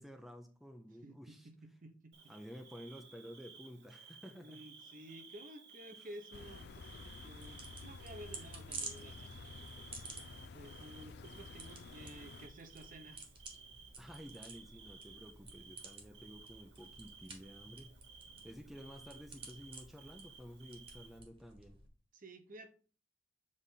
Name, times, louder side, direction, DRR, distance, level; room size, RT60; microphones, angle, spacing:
voice 1, 0.0-1.5 2.3-4.6 13.7-17.9 18.4-21.8, equal, ahead, 4 dB, 0.5 m, -52 dB
voice 2, 1.0-2.3 4.4-10.0 10.5-13.2 22.1-22.7, right 1 dB, 45° right, 6 dB, 0.9 m, -53 dB
Bird / Cricket, 2.1-21.2, right 5 dB, 60° right, 1.1 m, -57 dB
sound 1, 6.3-12.5, left 4 dB, 60° left, 0.4 m, -52 dB
sound 2, 6.7-21.9, right 3 dB, 30° right, 1.3 m, -53 dB
7.4 x 3.4 x 4.1 m, 0.40 s
head